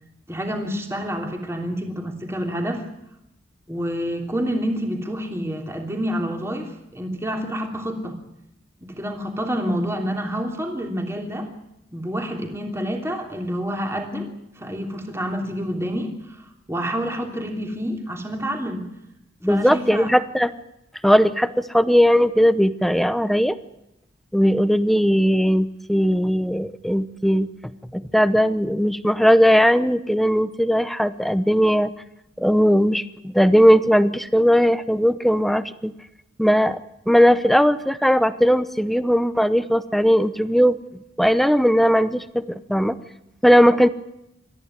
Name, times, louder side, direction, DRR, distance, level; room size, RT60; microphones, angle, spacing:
voice 1, 0.3-2.8 3.7-8.2 8.8-11.5 11.9-14.3 14.6-18.9 19.4-20.1, equal, 15° right, 2 dB, 3.1 m, -28 dB
voice 2, 19.4-20.5 21.0-23.6 24.3-27.5 27.9-31.9 32.4-35.9 36.4-36.8 37.1-40.8 41.2-43.0 43.4-43.9, equal, ahead, 12 dB, 0.8 m, -18 dB
27.0 x 14.5 x 9.6 m, 0.86 s
head